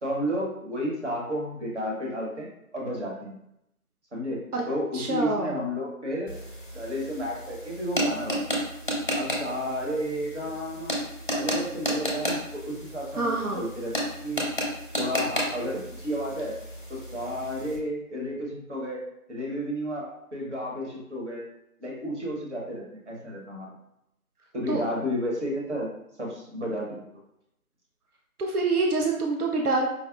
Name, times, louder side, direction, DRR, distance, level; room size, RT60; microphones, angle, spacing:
voice 1, 0.0-3.4 4.1-4.4 4.7-6.4 6.7-8.6 9.1-11.0 11.3-13.9 14.2-14.5 15.0-16.5 16.9-19.0 19.3-21.5 21.8-23.7 24.5-25.9 26.2-27.1, equal, 50° right, -3 dB, 1.0 m, -32 dB
voice 2, 4.9-5.5 13.2-13.6 24.7-24.8 28.4-29.9, right 3 dB, 90° right, 1 dB, 0.6 m, -26 dB
sound 1, 6.3-17.8, equal, 35° left, 0.6 m, -32 dB
4.7 x 2.0 x 2.3 m, 0.81 s
figure-of-eight pair, 165°, 44 cm